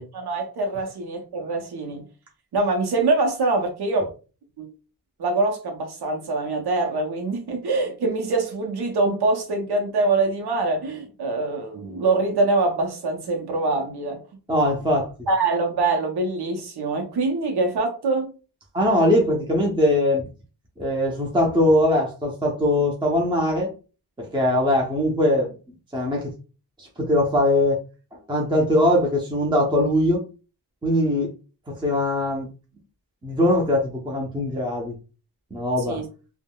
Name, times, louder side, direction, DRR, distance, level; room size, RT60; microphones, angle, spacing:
voice 1, 0.0-2.1 2.5-4.1 4.6-4.7 5.2-14.2 15.3-18.3 35.9-36.1, right 3 dB, 80° right, 0.7 m, -24 dB
voice 2, 14.5-15.1 18.7-20.2 20.8-23.7 24.2-25.6 25.9-26.3 26.8-27.8 28.1-30.2 30.8-31.3 31.7-32.5 33.2-35.0 35.5-36.0, left 1 dB, 10° right, 0.6 m, -21 dB
3.4 x 2.1 x 2.2 m
wide cardioid pair, 110°, 39 cm